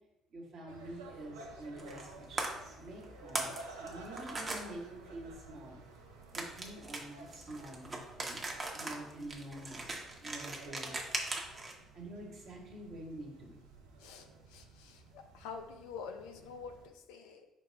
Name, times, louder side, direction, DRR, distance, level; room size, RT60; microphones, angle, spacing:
voice 1, 0.3-5.8 6.3-8.5 8.7-10.9 11.9-13.6, right 1 dB, 60° right, -1 dB, 1.4 m, -47 dB
sound 1, 0.7-16.9, right 2 dB, 85° right, 0.6 m, -53 dB
sound 2, 1.8-2.1 2.4-2.5 3.0-4.6 6.3-11.7, right 2 dB, 30° right, 1.0 m, -39 dB
voice 2, 14.0-17.5, left 5 dB, 75° left, 6 dB, 0.5 m, -47 dB
4.8 x 2.4 x 4.5 m, 0.92 s
hypercardioid pair, 50°, 0 cm